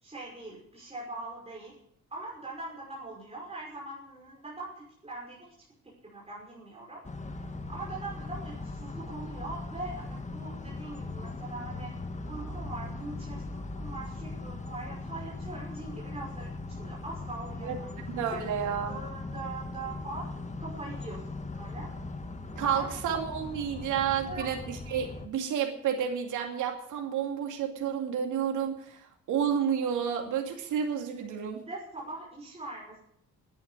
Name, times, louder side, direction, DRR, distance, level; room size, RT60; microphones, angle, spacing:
voice 1, 0.0-1.7 2.1-5.5 6.0-7.0 7.7-11.9 12.2-16.5 16.8-20.3 20.6-21.2 21.5-21.9 22.6-22.9 24.0-24.5 31.7-33.0, right 2 dB, 20° right, -4 dB, 5.6 m, -42 dB
sound 1, 7.0-25.3, left 3 dB, 25° left, 1.8 m, -39 dB
voice 2, 18.1-19.0 22.6-31.6, right 8 dB, 85° right, 3 dB, 2.4 m, -30 dB
10.5 x 10.0 x 9.6 m, 0.68 s
cardioid pair, 90°, 30 cm